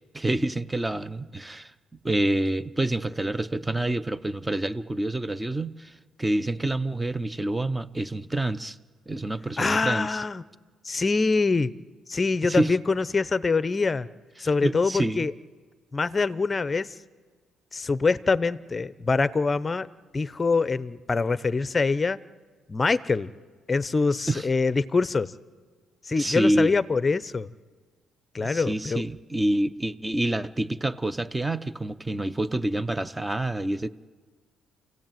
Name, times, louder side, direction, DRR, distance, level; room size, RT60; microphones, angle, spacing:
voice 1, 0.1-1.7 2.0-5.9 6.2-8.8 9.1-10.2 12.4-12.7 14.4-15.3 24.3-24.5 26.2-26.7 28.4-33.9, right 1 dB, 10° right, 14 dB, 0.8 m, -27 dB
voice 2, 9.6-10.4 10.8-11.7 12.1-14.1 14.4-15.3 15.9-16.9 17.7-19.9 20.1-22.2 22.7-23.3 23.7-25.3 26.0-27.5 28.3-29.0, left 4 dB, 20° left, 16 dB, 0.7 m, -24 dB
28.5 x 16.0 x 9.1 m, 1.5 s
cardioid pair, 130°, 0 cm